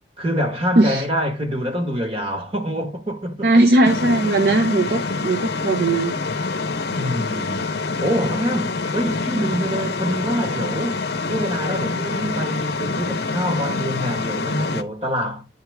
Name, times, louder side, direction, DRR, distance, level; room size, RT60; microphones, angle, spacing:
voice 1, 0.2-3.6 6.9-7.7 8.0-11.0 11.3-15.5, equal, 30° right, 1.6 m, -25 dB
voice 2, 3.4-6.2, right 2 dB, 60° right, 0.7 m, -18 dB
sound 1, 3.8-14.8, left 3 dB, 60° left, 0.7 m, -26 dB
10.5 x 4.5 x 3.4 m
head